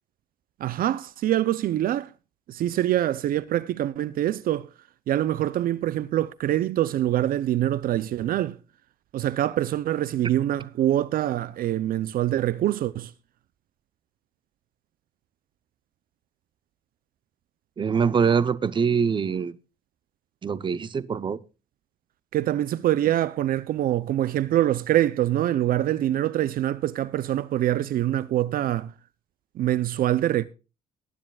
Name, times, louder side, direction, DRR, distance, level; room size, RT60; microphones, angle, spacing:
voice 1, 0.6-2.1 2.5-4.7 5.1-8.6 9.1-13.1 22.3-28.9 29.6-30.5, right 13 dB, 60° right, 0.6 m, -24 dB
voice 2, 17.8-19.5 20.4-21.4, right 6 dB, 30° right, 0.8 m, -24 dB
19.5 x 9.9 x 2.3 m
cardioid pair, 110°, 17 cm